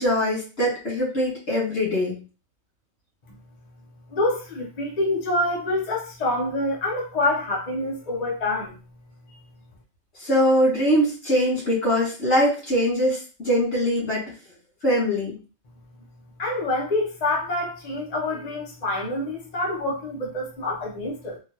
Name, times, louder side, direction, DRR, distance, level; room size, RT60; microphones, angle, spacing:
voice 1, 0.0-2.2 10.2-14.2 14.8-15.3, equal, 65° left, -5 dB, 2.1 m, -22 dB
voice 2, 4.1-8.8 16.4-21.4, left 2 dB, 40° left, -3 dB, 0.8 m, -26 dB
3.8 x 2.4 x 2.9 m, 0.34 s
omnidirectional pair, 1.3 m